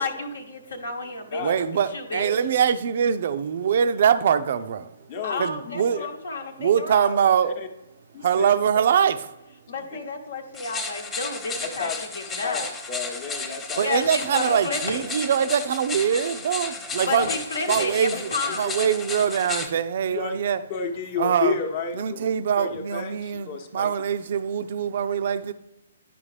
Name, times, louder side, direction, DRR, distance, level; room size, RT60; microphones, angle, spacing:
voice 1, 0.0-1.7 1.9-2.3 5.2-7.2 9.7-11.9 12.1-12.7 13.8-15.1 17.1-18.8, left 3 dB, 65° left, 1.0 m, -31 dB
voice 2, 1.4-4.9 5.4-6.0 6.6-7.5 8.2-9.3 13.8-17.3 17.7-20.6 21.2-21.5 22.0-25.5, right 8 dB, 50° right, 0.4 m, -23 dB
voice 3, 5.1-6.1 7.4-7.7 8.1-8.5 9.7-10.0 11.6-13.9 14.5-14.6 17.1-17.4 17.7-17.8 18.5-19.0 20.1-20.4 20.7-22.3 22.6-23.9, left 5 dB, 40° left, 0.9 m, -32 dB
sound 1, 10.5-19.7, left 3 dB, 15° left, 0.9 m, -33 dB
11.0 x 4.9 x 3.2 m
figure-of-eight pair, 130°, 0 cm